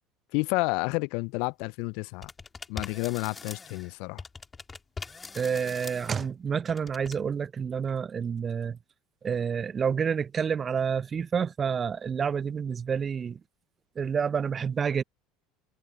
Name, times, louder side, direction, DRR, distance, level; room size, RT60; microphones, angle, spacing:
voice 1, 0.3-2.3 2.7-4.2, left 28 dB, 60° left, 1.0 m, -30 dB
sound 1, 2.2-3.9 4.2-6.3 6.7-7.2, left 4 dB, 20° left, 3.4 m, -42 dB
voice 2, 5.3-8.8 9.2-13.4 14.0-15.0, right 6 dB, 30° right, 1.1 m, -29 dB
figure-of-eight pair, 70°, 0 cm